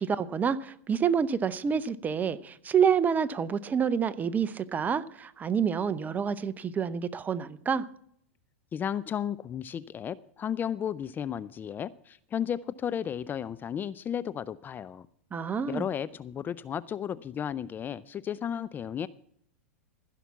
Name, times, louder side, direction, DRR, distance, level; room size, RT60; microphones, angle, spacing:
voice 1, 0.0-7.9 15.3-15.9, right 7 dB, 20° right, 0.7 m, -28 dB
voice 2, 8.7-15.1 15.7-19.1, left 9 dB, 25° left, 0.4 m, -34 dB
15.5 x 5.9 x 7.0 m
hypercardioid pair, 110°, 8 cm